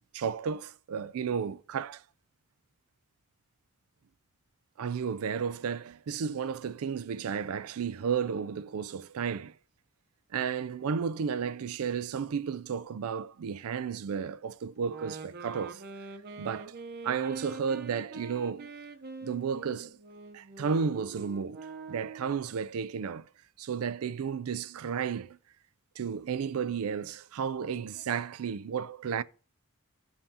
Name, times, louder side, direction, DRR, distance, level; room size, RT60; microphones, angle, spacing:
voice 1, 0.1-2.0 4.8-9.5 10.3-15.8 16.4-16.7 17.0-18.7 19.2-20.0 20.3-23.3 23.6-25.4 26.0-29.2, right 6 dB, 90° right, 0.4 m, -33 dB
sound 1, 14.8-22.4, right 3 dB, 45° right, 0.8 m, -44 dB
16.5 x 5.6 x 2.8 m
head